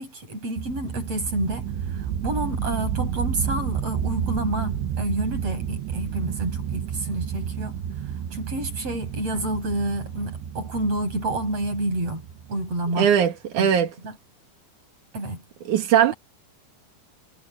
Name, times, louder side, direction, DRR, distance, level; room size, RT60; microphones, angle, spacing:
voice 1, 0.0-7.8 8.3-13.1 13.6-13.7 14.0-14.1 15.1-15.4, right 1 dB, 30° right, 9.0 m, -29 dB
sound 1, 0.6-13.0, right 9 dB, 75° right, 3.4 m, -31 dB
voice 2, 13.0-13.9 15.6-16.1, right 9 dB, 55° right, 2.6 m, -19 dB
omnidirectional pair, 5.3 m